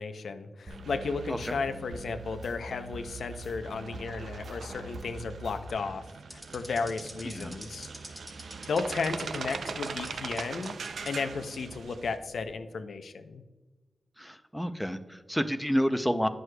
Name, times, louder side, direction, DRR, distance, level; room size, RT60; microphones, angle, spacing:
voice 1, 0.0-6.1 6.3-7.9 8.7-10.8 11.0-13.4, left 4 dB, 90° left, 9 dB, 0.5 m, -34 dB
sound 1, 0.7-5.7, right 2 dB, 40° right, 0.8 m, -44 dB
sound 2, 0.7-12.2, right 5 dB, 85° right, 0.4 m, -42 dB
sound 3, 6.3-10.1 10.4-11.1 11.5-11.6 12.3-12.5, right 1 dB, 20° right, 1.4 m, -45 dB
voice 2, 7.2-7.6 14.2-16.3, equal, ahead, 9 dB, 0.4 m, -29 dB
9.3 x 6.2 x 2.2 m, 1.2 s
wide cardioid pair, 105°, 0 cm